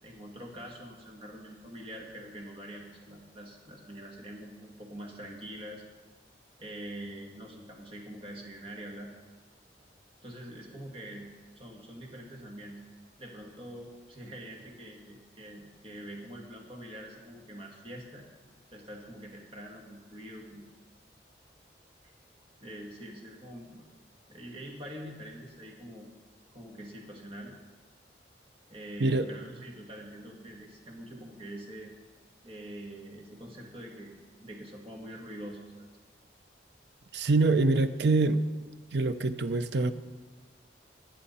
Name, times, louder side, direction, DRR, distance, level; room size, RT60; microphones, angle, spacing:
voice 1, 0.0-5.8 6.6-9.1 10.2-12.8 13.2-18.2 18.7-20.6 22.6-23.9 24.3-26.1 26.5-27.5 28.7-31.9 32.4-34.1 34.4-35.9, right 1 dB, 30° right, 0 dB, 2.1 m, -44 dB
voice 2, 37.1-38.5 38.9-39.9, right 3 dB, 75° right, 12 dB, 0.6 m, -25 dB
19.5 x 7.8 x 4.3 m, 1.3 s
head